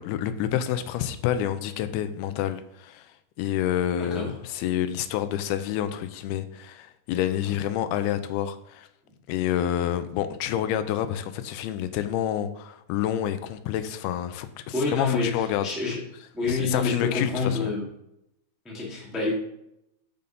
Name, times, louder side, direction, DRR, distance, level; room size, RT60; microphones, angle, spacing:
voice 1, 0.0-3.1 3.4-8.9 9.3-15.7 16.5-17.7, left 10 dB, 85° left, 10 dB, 2.6 m, -28 dB
voice 2, 3.9-4.3 14.7-16.0 16.3-17.9 18.6-19.3, left 3 dB, ahead, -4 dB, 0.8 m, -28 dB
5.8 x 5.4 x 5.2 m, 0.81 s
omnidirectional pair, 4.4 m